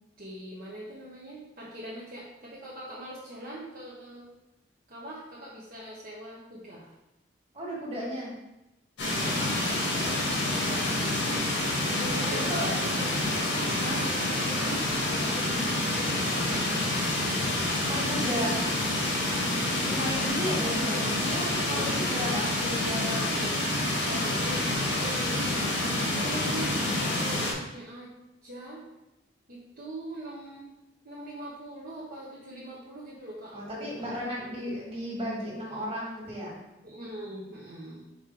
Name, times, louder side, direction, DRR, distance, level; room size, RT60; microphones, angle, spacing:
voice 1, 0.2-4.3 4.9-6.9 9.1-9.7 10.4-11.2 12.0-13.2 14.0-14.7 15.0-17.3 19.5-19.9 21.5-22.3 24.4-24.6 24.9-25.7 26.1-26.8 27.1-28.1 28.4-28.8 29.5-30.7 31.0-34.1 36.8-38.0, right 1 dB, 55° right, -7 dB, 1.1 m, -42 dB
voice 2, 7.5-8.3 9.2-9.7 10.0-10.2 12.5-12.7 13.8-14.1 17.9-18.6 19.9-23.4 24.1-24.4 33.5-36.5, equal, 35° right, -5 dB, 2.1 m, -34 dB
sound 1, 9.0-27.5, left 1 dB, 90° left, 1.7 m, -28 dB
5.2 x 3.8 x 4.8 m, 0.94 s
head